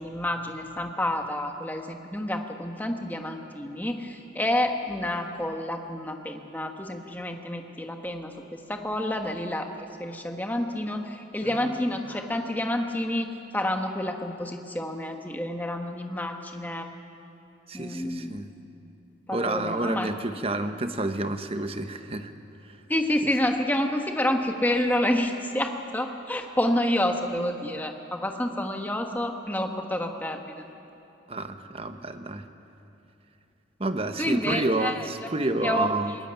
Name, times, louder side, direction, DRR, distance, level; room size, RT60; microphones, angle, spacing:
voice 1, 0.0-13.3 13.5-16.9 17.7-18.4 19.3-20.1 22.9-30.4 34.2-35.1 35.6-35.9, left 1 dB, 10° left, 4 dB, 1.3 m, -29 dB
voice 2, 11.4-11.9 17.7-18.5 19.3-22.3 22.7-22.8 31.3-32.4 33.8-36.2, right 2 dB, 30° right, 8 dB, 1.0 m, -29 dB
21.5 x 17.5 x 9.1 m, 2.8 s
head